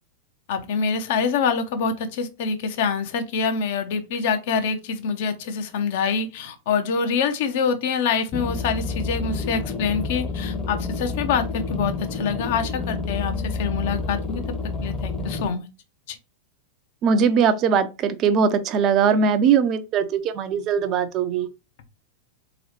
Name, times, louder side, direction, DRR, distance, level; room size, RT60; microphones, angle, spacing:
voice 1, 0.5-14.4 14.8-15.7 16.1-16.2, left 6 dB, 50° left, 0.7 m, -25 dB
sound 1, 8.3-15.5, left 3 dB, 25° left, 0.8 m, -29 dB
voice 2, 17.0-21.5, right 6 dB, 35° right, 0.4 m, -20 dB
3.8 x 3.0 x 3.0 m
figure-of-eight pair, 90°, 0 cm